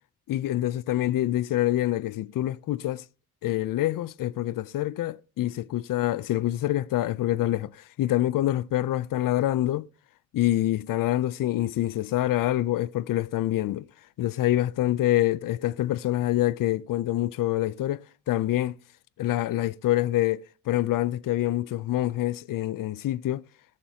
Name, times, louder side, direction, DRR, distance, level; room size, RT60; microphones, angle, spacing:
voice 1, 0.3-3.0 3.4-9.9 10.3-13.9 14.2-18.8 19.2-23.4, left 14 dB, 85° left, 0.5 m, -26 dB
18.5 x 7.3 x 2.8 m
wide cardioid pair, 145°, 32 cm